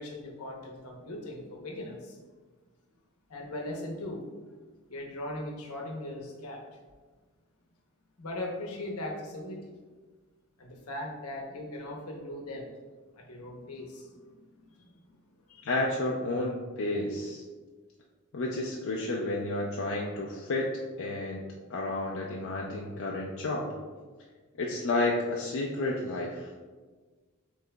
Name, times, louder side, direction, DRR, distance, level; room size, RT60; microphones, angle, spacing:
voice 1, 0.0-2.2 3.3-4.3 4.9-6.6 8.2-9.7 10.6-12.6 13.2-15.1 15.5-15.7, left 1 dB, 80° left, 1 dB, 0.9 m, -39 dB
voice 2, 15.6-17.4 18.3-21.4 21.7-23.8 24.6-26.5, left 2 dB, 60° left, -2 dB, 0.5 m, -31 dB
7.5 x 3.1 x 2.2 m, 1.4 s
head